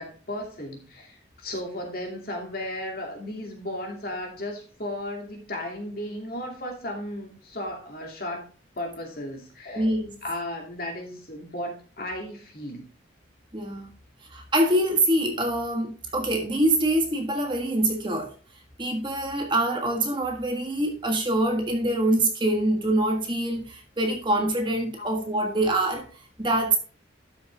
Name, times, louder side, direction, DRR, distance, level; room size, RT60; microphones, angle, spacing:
voice 1, 0.0-8.5 8.8-9.9 10.2-12.9 25.0-25.1, left 1 dB, 50° left, 2.6 m, -35 dB
voice 2, 9.7-10.1 13.5-13.9 14.3-18.3 18.8-26.1 26.4-26.8, right 1 dB, 25° right, 1.5 m, -25 dB
12.0 x 6.4 x 3.4 m
head